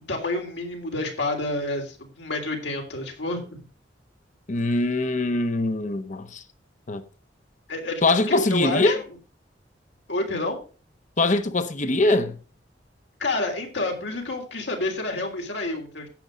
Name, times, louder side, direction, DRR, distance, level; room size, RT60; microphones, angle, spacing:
voice 1, 0.1-3.6 7.7-8.0 8.3-9.0 10.1-10.6 13.2-16.1, left 2 dB, 75° left, 3.2 m, -28 dB
voice 2, 4.5-6.4 6.9-7.0 8.0-9.0 11.2-12.4, left 2 dB, 45° left, 1.0 m, -22 dB
10.5 x 7.8 x 5.2 m
head